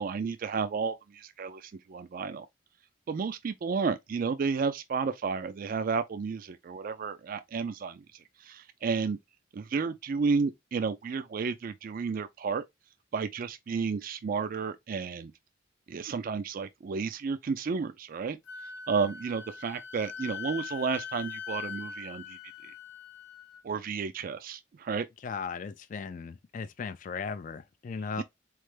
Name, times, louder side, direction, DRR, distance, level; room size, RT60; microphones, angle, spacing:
voice 1, 0.0-2.5 3.1-9.2 9.5-12.6 13.1-15.3 15.9-18.4 18.9-22.7 23.6-25.1 28.2-28.3, right 5 dB, 45° right, 0.3 m, -32 dB
Wind instrument woodwind instrument, 18.5-23.6, left 6 dB, 60° left, 0.8 m, -42 dB
voice 2, 25.2-28.2, left 5 dB, 40° left, 0.3 m, -37 dB
4.1 x 3.2 x 3.2 m
head